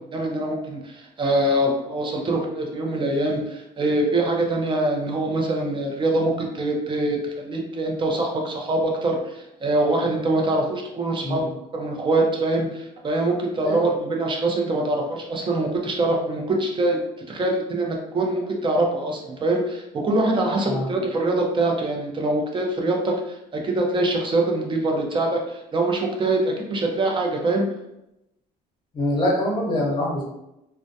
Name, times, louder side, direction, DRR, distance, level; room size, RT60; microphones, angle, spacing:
voice 1, 0.1-11.5 11.7-17.0 17.3-27.6, right 2 dB, 30° right, 0 dB, 0.6 m, -24 dB
voice 2, 28.9-30.2, left 1 dB, 25° left, -3 dB, 0.9 m, -24 dB
2.2 x 2.1 x 2.6 m, 0.86 s
cardioid pair, 110°, 17 cm